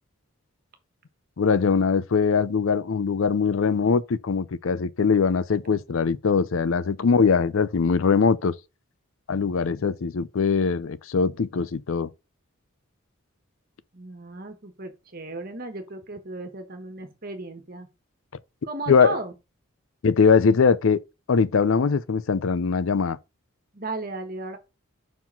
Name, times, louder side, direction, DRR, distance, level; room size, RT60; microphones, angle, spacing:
voice 1, 1.4-8.5 9.3-12.1 18.9-19.2 20.0-21.0 21.3-23.2, left 5 dB, 70° left, 0.5 m, -21 dB
voice 2, 13.9-17.9 18.6-19.3 23.7-24.6, right 3 dB, 45° right, 1.5 m, -35 dB
5.7 x 4.7 x 5.7 m
head